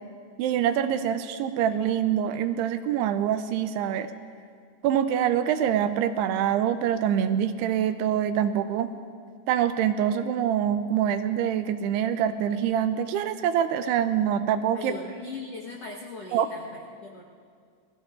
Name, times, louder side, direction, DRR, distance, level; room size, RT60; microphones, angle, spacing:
voice 1, 0.4-4.1 4.8-8.9 9.5-15.0 16.3-16.5, right 9 dB, 80° right, 10 dB, 2.5 m, -25 dB
voice 2, 14.7-17.2, left 3 dB, 80° left, -3 dB, 1.4 m, -39 dB
29.0 x 19.0 x 2.5 m, 2.1 s
omnidirectional pair, 4.9 m